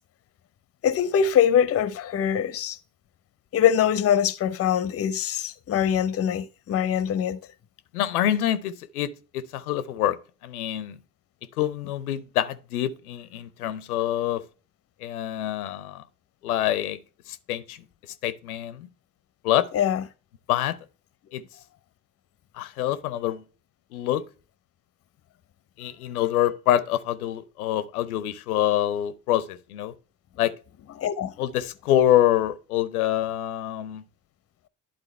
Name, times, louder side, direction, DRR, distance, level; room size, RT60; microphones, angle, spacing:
voice 1, 0.8-2.8 3.5-7.4 19.7-20.0 31.0-31.3, left 9 dB, 35° left, 0.6 m, -23 dB
voice 2, 7.9-10.2 10.4-11.0 11.6-14.4 15.0-16.0 16.4-17.0 17.3-17.8 18.2-18.9 19.4-19.7 20.5-20.8 21.3-21.4 22.5-23.4 23.9-24.2 25.8-29.9 30.4-30.5 31.4-34.0, left 12 dB, 80° left, 0.6 m, -26 dB
11.0 x 3.8 x 3.2 m
figure-of-eight pair, 50°, 44 cm